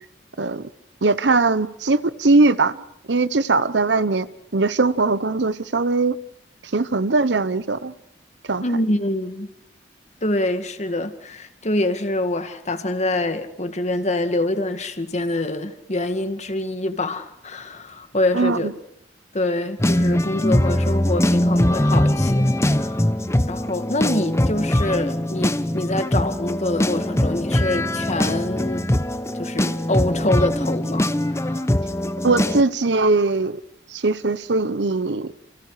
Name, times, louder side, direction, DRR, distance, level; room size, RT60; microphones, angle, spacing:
voice 1, 0.4-0.7 1.0-2.8 3.1-4.3 4.5-6.2 6.7-7.9 8.5-8.6 18.3-18.7 32.2-33.6 33.9-35.3, right 3 dB, 75° right, 0.9 m, -20 dB
voice 2, 8.6-9.5 10.2-18.7 19.3-23.1 23.5-28.9 29.3-31.7, left 1 dB, 40° left, 2.0 m, -25 dB
sound 1, 19.8-32.6, left 1 dB, 15° left, 0.8 m, -21 dB
29.5 x 28.5 x 4.9 m
head